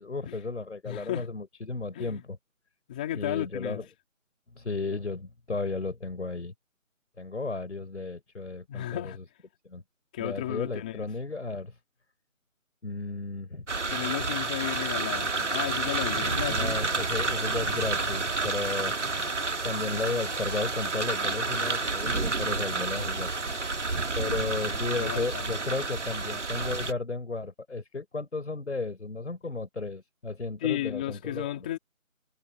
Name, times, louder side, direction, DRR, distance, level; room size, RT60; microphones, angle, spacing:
voice 1, 0.0-2.4 3.1-3.8 4.5-6.5 7.2-9.2 9.6-9.8 10.2-11.8 12.8-13.7 16.5-19.0 19.6-23.3 24.1-31.7, left 3 dB, 55° left, 4.7 m, -34 dB
voice 2, 0.9-1.3 1.9-2.2 2.9-3.8 8.7-9.2 10.1-11.1 13.9-16.8 24.1-24.4 24.9-25.5 30.6-31.8, left 13 dB, 5° left, 2.6 m, -33 dB
sound 1, 13.7-26.9, right 3 dB, 55° right, 1.6 m, -30 dB
figure-of-eight pair, 170°, 42 cm